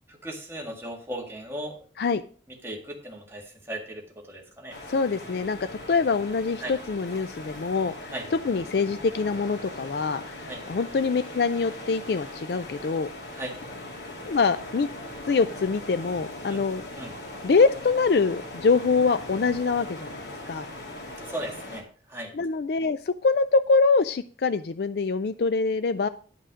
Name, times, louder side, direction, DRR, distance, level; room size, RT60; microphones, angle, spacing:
voice 1, 0.2-1.8 2.6-4.8 6.6-6.7 8.1-8.2 10.5-10.6 13.4-13.6 16.5-16.6 17.0-17.1 21.2-21.8 22.1-22.3, right 1 dB, 15° right, 0 dB, 1.8 m, -36 dB
sound 1, 4.7-21.8, left 1 dB, 75° left, 2.7 m, -40 dB
voice 2, 4.9-5.6 5.9-13.1 14.2-14.9 15.3-16.8 17.4-20.7 22.3-26.1, left 4 dB, 60° left, 11 dB, 0.4 m, -24 dB
11.0 x 5.6 x 5.0 m, 0.42 s
head